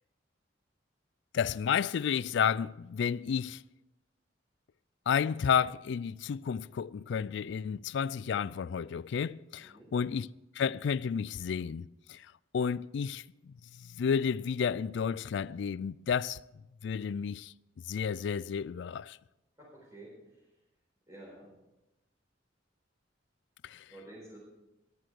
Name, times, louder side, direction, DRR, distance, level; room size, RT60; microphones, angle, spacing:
voice 1, 1.3-3.6 5.1-10.3 10.6-16.4 16.8-17.5 17.9-19.2 23.6-23.9, left 7 dB, 65° left, 0.3 m, -31 dB
voice 2, 19.6-20.5 21.1-21.5 23.9-24.4, right 1 dB, 20° right, 4.5 m, -51 dB
14.0 x 12.5 x 4.6 m
head